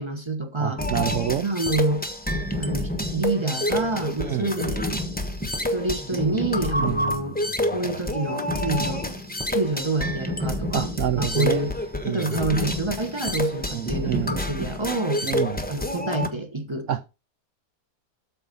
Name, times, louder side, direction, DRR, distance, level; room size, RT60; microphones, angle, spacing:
voice 1, 0.0-0.8 1.4-2.0 2.6-4.9 5.7-7.4 7.7-9.1 9.5-11.7 12.0-15.2 15.7-16.9, right 2 dB, 20° right, 1.1 m, -27 dB
voice 2, 0.6-1.4 4.2-4.5 6.8-7.4 10.7-11.6 12.0-12.4 13.7-14.4 15.2-15.6 16.9-17.1, right 11 dB, 65° right, 0.7 m, -28 dB
sound 1, 0.8-16.3, left 1 dB, 5° left, 0.9 m, -28 dB
13.0 x 4.4 x 5.3 m
omnidirectional pair, 1.8 m